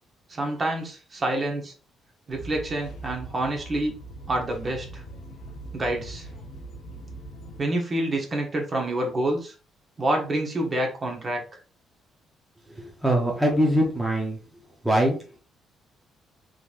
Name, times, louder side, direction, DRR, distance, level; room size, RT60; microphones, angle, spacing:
voice 1, 0.3-1.7 2.3-3.9 4.3-5.0 5.7-6.3 7.6-9.5 10.0-11.4, right 1 dB, 30° right, 1 dB, 1.0 m, -27 dB
sound 1, 2.3-7.6, right 2 dB, 90° left, 1.0 m, -41 dB
voice 2, 12.8-14.4 14.8-15.4, equal, 5° right, -1 dB, 0.8 m, -23 dB
3.8 x 3.1 x 2.5 m, 0.37 s
cardioid pair, 135°, 0 cm